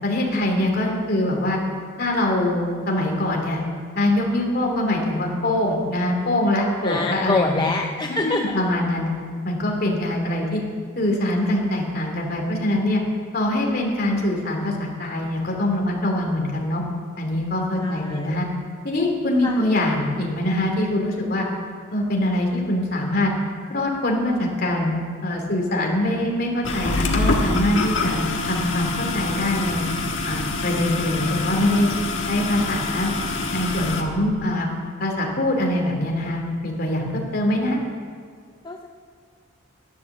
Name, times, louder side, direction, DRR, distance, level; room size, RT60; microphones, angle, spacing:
voice 1, 0.0-1.6 2.0-3.6 3.9-7.7 8.1-9.1 9.4-10.6 10.9-13.0 13.3-16.8 17.2-18.5 18.8-21.5 21.9-23.3 23.7-24.9 25.2-29.9 30.2-31.9 32.3-33.1 33.5-34.7 35.0-37.8, left 1 dB, 50° left, 0 dB, 2.9 m, -23 dB
voice 2, 6.8-8.6 17.8-18.4 19.4-19.7 38.6-38.9, left 3 dB, 20° left, 2 dB, 0.6 m, -26 dB
sound 1, 26.6-34.0, left 2 dB, 65° left, 1.5 m, -25 dB
12.0 x 11.0 x 7.2 m, 2.1 s
head